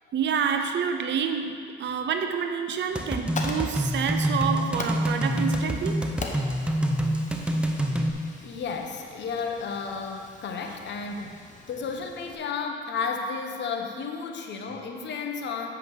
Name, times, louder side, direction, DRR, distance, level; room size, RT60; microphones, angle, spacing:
voice 1, 0.1-6.1, right 6 dB, 65° right, 6 dB, 0.6 m, -28 dB
Fire, 2.9-12.3, left 3 dB, 40° left, 1.0 m, -42 dB
sound 1, 2.9-8.1, right 1 dB, 5° right, 0.7 m, -26 dB
voice 2, 8.4-15.7, left 5 dB, 65° left, 3 dB, 1.0 m, -33 dB
7.9 x 5.2 x 6.1 m, 2.2 s
cardioid pair, 90°, 20 cm